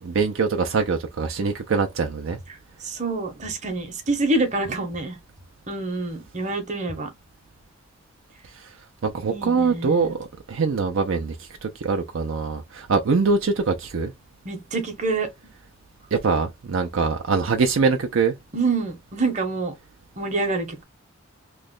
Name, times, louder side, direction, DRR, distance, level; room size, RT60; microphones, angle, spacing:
voice 1, 0.0-2.4 9.0-10.2 10.5-11.4 11.6-14.1 16.1-18.3, right 4 dB, 65° right, 0.5 m, -23 dB
voice 2, 2.5-5.2 5.7-7.1 9.3-10.1 14.4-15.3 18.5-19.7 20.2-20.8, right 3 dB, 35° right, 0.8 m, -27 dB
3.0 x 2.1 x 3.6 m
head